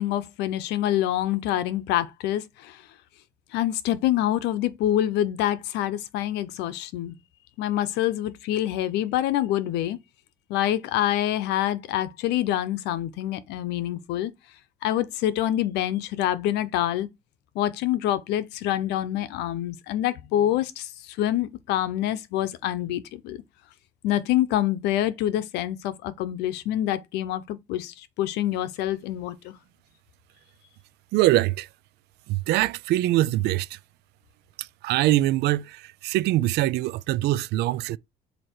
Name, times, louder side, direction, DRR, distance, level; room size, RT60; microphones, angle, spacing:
voice 1, 0.0-2.8 3.5-7.1 7.6-10.0 10.5-14.3 14.8-17.1 17.5-23.4 24.0-29.5, left 12 dB, 90° left, 0.8 m, -26 dB
voice 2, 31.1-31.7 32.3-33.8 34.6-38.0, right 16 dB, 80° right, 0.4 m, -23 dB
7.7 x 2.9 x 4.4 m
cardioid pair, 110°, 17 cm